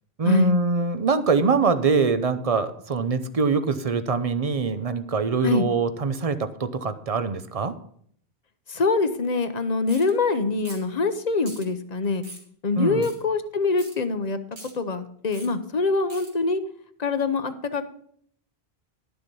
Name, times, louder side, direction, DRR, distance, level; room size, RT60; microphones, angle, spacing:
voice 1, 0.2-7.8 12.8-13.1, right 4 dB, 40° right, 11 dB, 0.7 m, -23 dB
voice 2, 8.7-12.2 12.6-14.4 14.7-16.6 17.0-17.9, left 3 dB, 45° left, 10 dB, 0.8 m, -24 dB
sound 1, 9.9-10.1 10.6-10.9 11.4-11.7 12.2-12.5 13.0-13.2 13.8-14.0 14.5-14.7 15.3-15.5 16.1-16.3, right 2 dB, 60° right, 2.8 m, -42 dB
11.5 x 7.0 x 5.4 m, 0.63 s
omnidirectional pair, 1.1 m